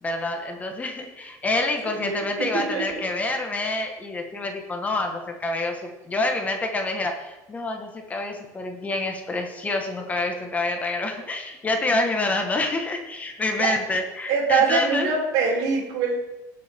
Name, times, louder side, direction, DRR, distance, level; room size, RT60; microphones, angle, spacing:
voice 1, 0.0-15.1, left 2 dB, 20° left, 4 dB, 1.3 m, -27 dB
voice 2, 1.8-3.0 11.2-11.3 13.6-13.7 14.3-16.1, right 5 dB, 65° right, -1 dB, 3.6 m, -24 dB
19.0 x 6.9 x 3.5 m, 1.0 s
cardioid pair, 140°, 8 cm